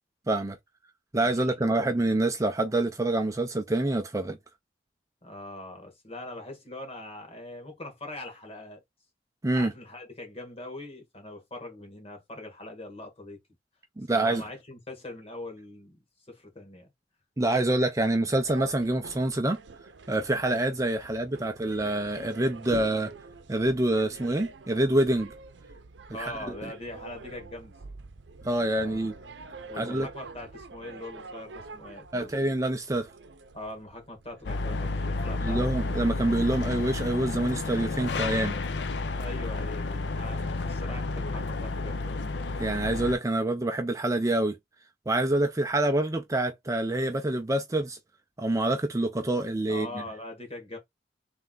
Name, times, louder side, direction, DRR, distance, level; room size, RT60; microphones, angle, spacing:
voice 1, 0.3-0.6 1.1-4.4 9.4-9.7 14.0-14.4 17.4-19.6 20.1-23.1 23.5-25.3 26.2-26.3 28.4-29.1 29.8-30.1 32.1-33.1 35.4-38.5 42.6-44.5 45.1-48.0 48.4-49.9, right 1 dB, 20° right, 0.5 m, -26 dB
voice 2, 1.2-2.0 5.2-8.8 9.5-13.4 14.1-16.0 16.3-16.9 26.1-27.7 28.7-29.2 29.7-32.3 33.5-35.6 39.1-42.2 49.7-50.8, left 2 dB, 35° left, 1.7 m, -42 dB
sound 1, 18.4-35.1, right 3 dB, 85° right, 0.6 m, -46 dB
sound 2, 34.4-43.1, left 3 dB, 70° left, 0.6 m, -31 dB
3.5 x 3.3 x 3.8 m
head